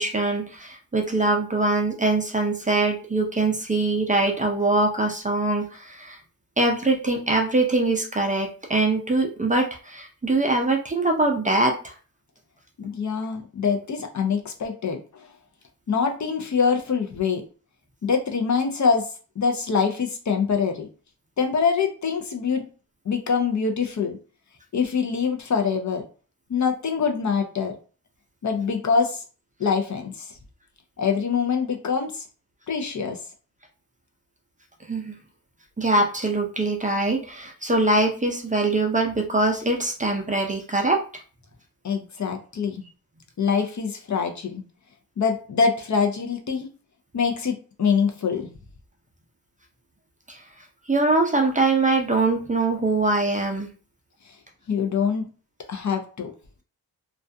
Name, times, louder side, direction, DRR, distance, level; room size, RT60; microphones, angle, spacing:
voice 1, 0.0-6.2 6.6-11.9 34.9-35.1 35.8-41.0 50.3-50.4 50.9-53.7, right 2 dB, 20° right, 2 dB, 0.5 m, -23 dB
voice 2, 12.8-15.2 15.9-17.4 18.0-19.1 19.4-20.9 21.4-22.6 23.1-24.2 24.7-26.0 26.5-27.7 28.4-29.2 29.6-30.3 31.0-32.3 32.7-33.2 41.8-42.8 43.4-44.6 45.2-46.7 47.1-48.5 54.7-55.3 55.7-56.3, left 5 dB, 50° left, 4 dB, 0.5 m, -24 dB
2.3 x 2.3 x 2.6 m, 0.37 s
cardioid pair, 80°, 39 cm